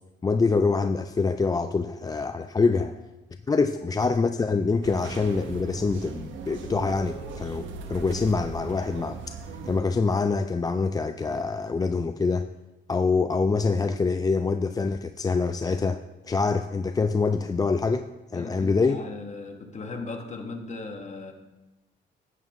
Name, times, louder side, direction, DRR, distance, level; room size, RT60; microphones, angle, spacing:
voice 1, 0.2-2.9 3.5-9.2 9.6-12.4 12.9-18.0 18.3-19.0, left 4 dB, 20° left, 9 dB, 0.3 m, -25 dB
sound 1, 4.8-9.8, right 5 dB, 75° right, 1.0 m, -38 dB
voice 2, 18.3-21.3, left 3 dB, 35° left, 3 dB, 1.6 m, -37 dB
11.0 x 9.2 x 3.1 m, 1.1 s
cardioid pair, 90°, 20 cm